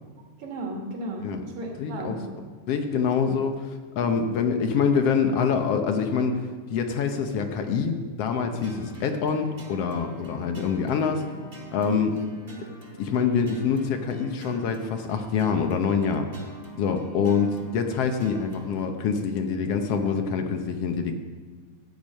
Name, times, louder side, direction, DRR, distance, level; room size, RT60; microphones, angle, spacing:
voice 1, 0.4-2.2 4.4-4.5 11.9-12.2, right 2 dB, 80° right, 0 dB, 3.5 m, -35 dB
voice 2, 1.8-2.2 2.7-3.7 4.0-6.4 6.7-11.2 11.7-12.1 13.0-16.3 16.8-21.1, left 6 dB, 65° left, 6 dB, 1.7 m, -25 dB
sound 1, 8.6-18.8, right 3 dB, 25° right, 1.5 m, -45 dB
14.0 x 8.8 x 5.3 m, 1.5 s
omnidirectional pair, 3.3 m